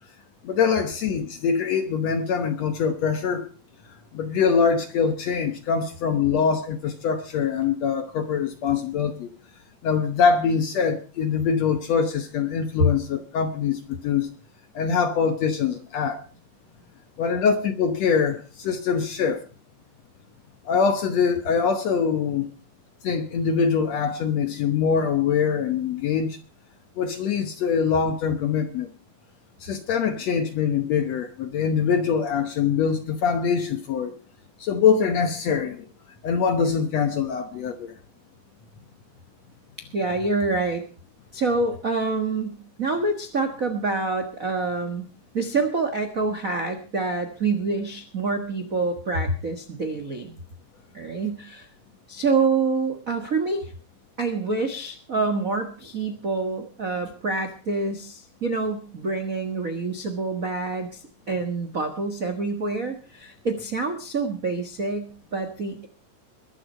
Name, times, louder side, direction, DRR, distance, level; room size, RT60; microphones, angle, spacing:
voice 1, 0.4-3.5 4.1-9.3 9.8-14.3 14.7-16.2 17.2-19.4 20.6-22.5 23.0-26.4 27.0-28.9 29.6-34.2 34.6-35.9 36.2-37.9, left 6 dB, 65° left, 1.8 m, -23 dB
voice 2, 39.8-40.8 41.3-45.1 45.3-50.4 50.9-51.7 52.1-53.7 54.2-65.9, right 3 dB, 75° right, 0.7 m, -26 dB
22.0 x 7.7 x 5.5 m
omnidirectional pair, 4.2 m